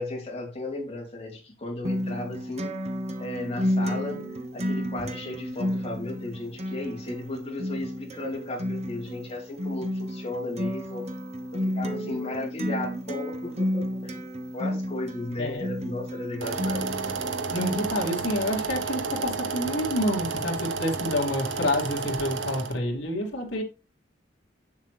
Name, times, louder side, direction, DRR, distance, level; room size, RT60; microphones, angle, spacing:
voice 1, 0.0-2.7 3.2-4.2 4.5-11.1 11.5-14.2 14.5-16.8, left 2 dB, 35° left, 3.4 m, -35 dB
Acoustic guitar, 1.8-17.9, equal, 35° right, 1.0 m, -32 dB
sound 1, 16.4-22.8, right 4 dB, 75° right, 0.8 m, -31 dB
voice 2, 17.5-23.6, left 1 dB, 80° left, 2.6 m, -28 dB
7.7 x 7.3 x 3.3 m
head